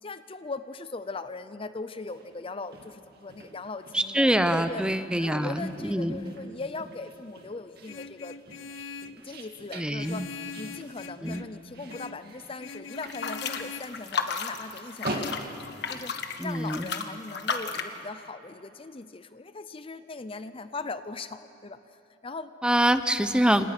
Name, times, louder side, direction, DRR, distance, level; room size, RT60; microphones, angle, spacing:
voice 1, 0.0-4.8 5.2-8.4 9.2-15.6 15.9-22.5, left 3 dB, 30° left, 12 dB, 0.6 m, -39 dB
sound 1, 2.0-16.4, right 1 dB, 55° right, 2.3 m, -44 dB
voice 2, 3.9-6.3 9.7-10.3 11.2-11.4 16.4-16.9 22.6-23.7, right 1 dB, 5° right, 10 dB, 0.7 m, -25 dB
Vehicle horn car horn honking, 7.9-9.2 10.0-11.5 11.9-12.2 12.6-13.8, left 5 dB, 85° left, 0.6 m, -42 dB
sound 2, 12.9-18.0, left 5 dB, 60° left, 1.4 m, -33 dB
29.5 x 27.0 x 6.0 m, 2.8 s
head